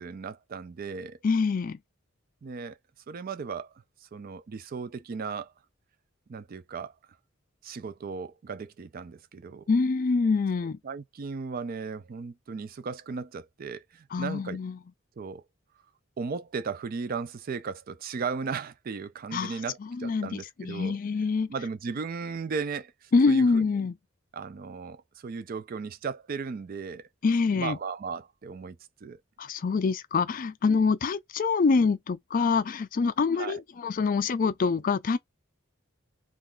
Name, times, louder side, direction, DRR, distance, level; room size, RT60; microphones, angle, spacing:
voice 1, 0.0-1.2 2.4-2.8 3.1-3.7 4.0-5.5 6.3-6.9 7.6-9.6 10.8-14.6 15.2-15.4 16.2-21.0 21.5-23.6 24.3-27.1 27.5-28.8 29.0-29.2 33.3-33.6, right 5 dB, 45° right, 0.4 m, -36 dB
voice 2, 1.2-1.8 9.7-10.8 14.1-14.8 19.3-21.5 23.1-24.0 27.2-27.8 29.4-35.2, left 4 dB, 45° left, 0.4 m, -25 dB
2.4 x 2.3 x 3.6 m
head